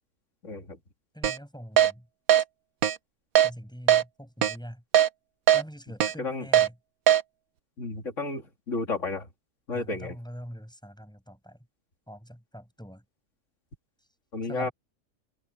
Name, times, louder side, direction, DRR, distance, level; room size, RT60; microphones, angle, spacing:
voice 1, 0.4-0.8 6.2-6.5 7.8-9.3 9.7-10.2 14.3-14.7, left 3 dB, 45° left, 3.0 m, -32 dB
voice 2, 1.1-2.1 3.4-4.8 5.5-6.8 9.7-11.6 12.1-13.0 14.5-14.7, equal, ahead, 7.3 m, -43 dB
Keyboard (musical), 1.2-1.4 1.8-1.9 2.3-2.4 2.8-3.0 3.4-3.5 3.9-4.0 4.4-4.5 4.9-5.1 5.5-5.6 6.0-6.1 6.5-6.7 7.1-7.2, right 11 dB, 60° right, 1.2 m, -19 dB
omnidirectional pair, 1.8 m